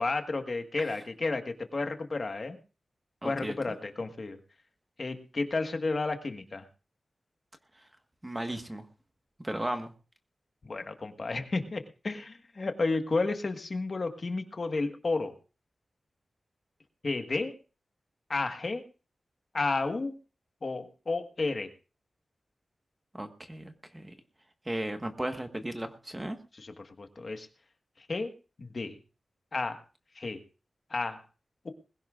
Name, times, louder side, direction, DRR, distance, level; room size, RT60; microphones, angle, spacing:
voice 1, 0.0-2.6 3.2-4.4 5.0-6.7 10.6-15.3 17.0-17.6 18.3-18.8 19.5-20.2 20.6-21.7 26.5-27.5 28.0-28.3 28.6-29.0 29.5-29.8 30.1-30.4 30.9-31.2 31.6-31.7, left 3 dB, 50° left, 6 dB, 1.5 m, -32 dB
voice 2, 3.2-3.5 7.7-7.9 8.2-8.8 9.4-9.9 23.1-24.1 24.6-26.4, right 1 dB, 15° right, 6 dB, 1.4 m, -35 dB
20.5 x 16.0 x 2.5 m, 0.35 s
wide cardioid pair, 95°, 0 cm